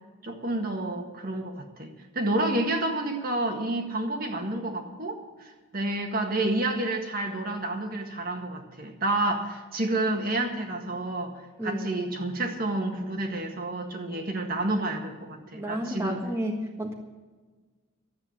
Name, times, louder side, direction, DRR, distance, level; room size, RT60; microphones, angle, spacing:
voice 1, 0.2-11.4 11.6-16.2, right 2 dB, 45° right, 2 dB, 1.7 m, -29 dB
voice 2, 15.5-16.9, equal, 15° right, 0 dB, 1.6 m, -32 dB
13.0 x 8.5 x 8.6 m, 1.4 s
head